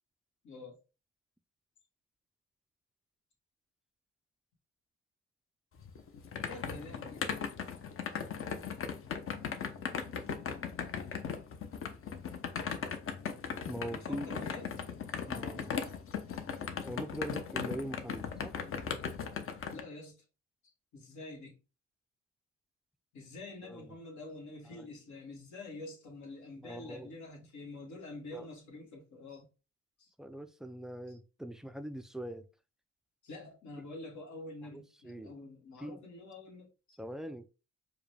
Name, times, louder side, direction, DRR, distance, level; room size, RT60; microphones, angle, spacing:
voice 1, 0.4-0.8 6.4-7.3 13.9-14.7 19.7-20.2 20.9-21.6 23.1-29.5 30.0-30.1 31.1-31.2 33.2-37.0, left 2 dB, 70° left, 1.6 m, -47 dB
sound 1, 5.8-19.8, left 6 dB, 45° left, 0.7 m, -38 dB
voice 2, 13.7-14.5 15.3-15.7 16.8-18.6 23.6-23.9 24.7-24.9 26.6-27.1 28.3-28.5 30.2-32.4 34.7-35.3 35.8-36.0 37.0-37.5, right 1 dB, ahead, 0.3 m, -42 dB
4.8 x 2.2 x 3.2 m
cardioid pair, 90°, 30 cm